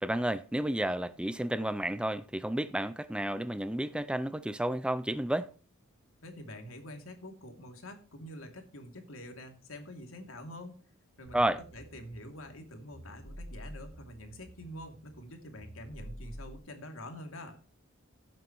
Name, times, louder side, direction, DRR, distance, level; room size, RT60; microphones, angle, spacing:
voice 1, 0.0-5.5 11.3-11.6, right 1 dB, 5° right, 0.4 m, -31 dB
voice 2, 6.2-10.8 11.2-11.4 11.7-17.6, left 1 dB, 80° left, 2.7 m, -46 dB
sound 1, 11.3-16.6, equal, 50° right, 2.8 m, -49 dB
16.0 x 7.7 x 3.0 m
head